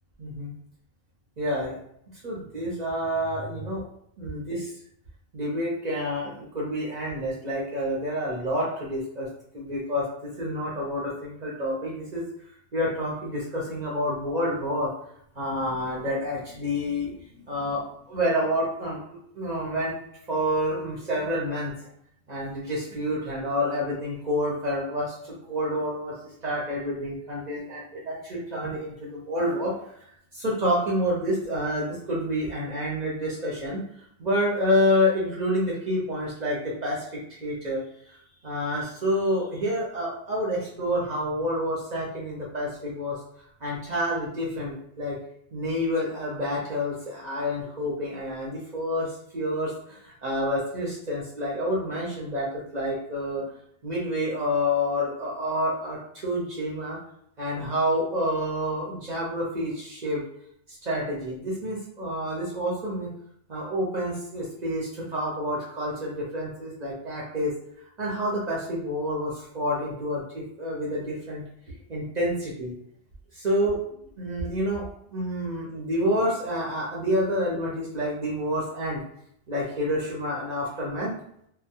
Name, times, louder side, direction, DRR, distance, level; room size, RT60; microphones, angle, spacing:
voice 1, 0.2-0.5 1.4-1.8 2.2-3.8 4.2-4.7 5.3-9.3 9.5-12.2 12.7-14.9 15.4-20.0 20.3-21.9 22.3-29.8 30.3-33.8 34.2-37.8 38.1-38.2 38.4-43.2 43.6-45.2 45.5-53.4 53.8-57.0 57.4-60.2 60.7-63.1 63.5-67.5 68.0-71.4 71.9-72.7 73.3-73.8 74.2-74.8 75.1-79.0 79.5-81.1, equal, 50° right, -5 dB, 0.7 m, -28 dB
2.2 x 2.0 x 2.8 m, 0.70 s
omnidirectional pair, 1.0 m